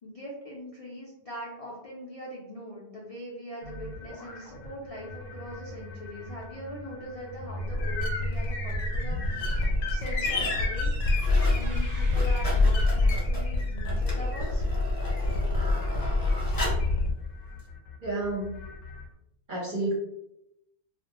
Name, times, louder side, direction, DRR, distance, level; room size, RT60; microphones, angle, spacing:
voice 1, 0.0-10.9 11.5-14.6, equal, 75° left, -5 dB, 0.3 m, -41 dB
sound 1, 3.6-19.1, left 2 dB, 90° left, 0.9 m, -28 dB
sound 2, 8.3-8.5 9.1-9.6 9.9-10.6 10.9-11.6 11.9-16.9 17.6-17.7, equal, 20° left, 0.6 m, -38 dB
sound 3, 9.8-13.1, right 1 dB, 85° right, 0.3 m, -41 dB
voice 2, 18.0-18.6 19.5-19.9, right 2 dB, 50° right, -4 dB, 0.7 m, -30 dB
2.4 x 2.1 x 2.8 m, 0.83 s
omnidirectional pair, 1.3 m